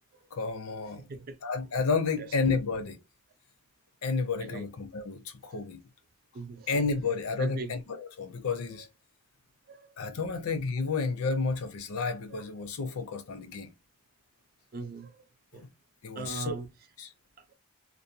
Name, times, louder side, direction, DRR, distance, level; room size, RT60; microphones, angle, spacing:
voice 1, 0.3-1.1 1.4-3.0 4.0-5.8 6.7-8.9 10.0-13.7 16.0-16.6 17.0-17.1, left 4 dB, 75° left, 0.5 m, -31 dB
voice 2, 1.0-1.4 2.2-2.3 4.4-4.6 5.5-5.6 6.3-6.8 7.4-7.7 8.8-8.9 9.7-9.9 14.7-15.2 15.5-15.6 16.2-16.7 17.4-17.5, right 3 dB, 40° right, 0.3 m, -40 dB
2.5 x 2.1 x 2.7 m
head